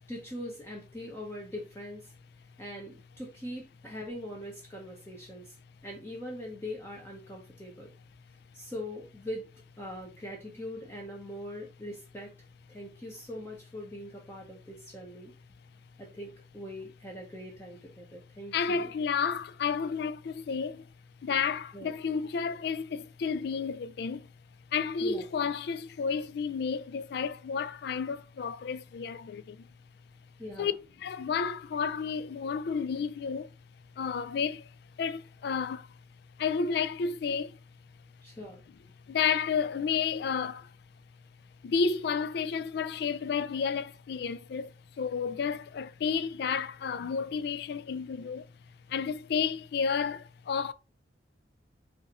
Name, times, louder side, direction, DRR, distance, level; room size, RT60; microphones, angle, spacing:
voice 1, 0.1-2.1 2.6-5.5 5.8-7.9 8.5-9.4 9.8-12.3 12.7-15.3 16.0-18.9 21.7-21.9 25.0-25.3 30.4-30.7 38.2-38.6, left 1 dB, 15° left, 0.8 m, -42 dB
voice 2, 18.5-20.9 21.2-24.3 24.7-29.7 30.6-30.7 31.0-33.5 34.0-34.7 35.0-35.9 36.4-37.6 39.1-40.7 41.6-48.5 48.9-50.7, left 6 dB, 60° left, 0.3 m, -31 dB
5.6 x 2.6 x 2.9 m
head